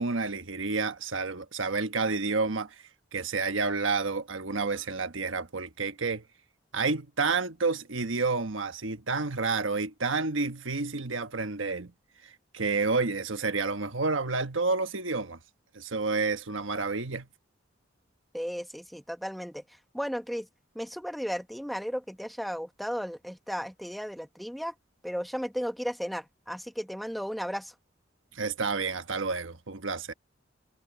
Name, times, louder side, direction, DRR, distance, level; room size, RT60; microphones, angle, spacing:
voice 1, 0.0-2.8 3.1-6.2 6.7-11.9 12.2-15.4 15.7-17.3 28.3-30.1, right 4 dB, 75° right, 1.3 m, -30 dB
voice 2, 18.3-19.6 19.9-20.5 20.7-24.7 25.0-27.7, equal, ahead, 1.2 m, -34 dB
head